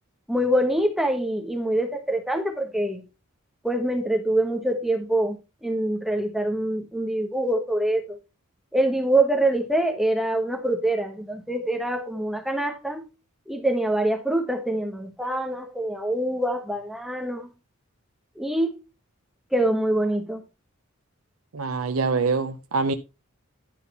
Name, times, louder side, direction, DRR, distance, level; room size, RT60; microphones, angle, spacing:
voice 1, 0.3-3.0 3.6-5.4 5.6-8.2 8.7-13.0 13.5-17.5 18.4-18.8 19.5-20.4, right 1 dB, ahead, 1.3 m, -25 dB
voice 2, 21.5-22.9, right 4 dB, 85° right, 0.7 m, -24 dB
11.5 x 4.1 x 5.5 m
head